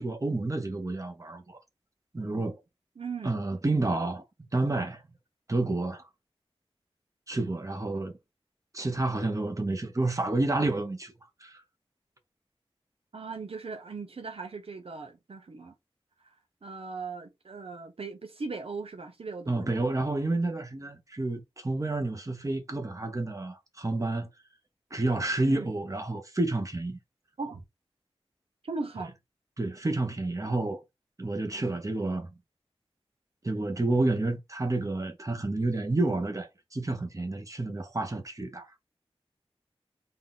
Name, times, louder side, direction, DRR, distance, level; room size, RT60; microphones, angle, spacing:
voice 1, 0.0-1.6 2.1-2.6 3.2-4.2 4.5-5.0 5.5-6.0 7.3-8.1 8.7-11.1 11.4-11.6 19.5-24.3 24.9-27.0 29.6-30.8 31.2-32.3 33.4-38.7, right 2 dB, 30° right, 1.2 m, -29 dB
voice 2, 3.0-3.4 13.1-15.7 16.2-16.4 16.6-19.8 25.4-25.7 27.4-27.6 28.6-29.2, right 4 dB, 70° right, 0.7 m, -38 dB
3.9 x 2.6 x 3.9 m
wide cardioid pair, 65°, 10 cm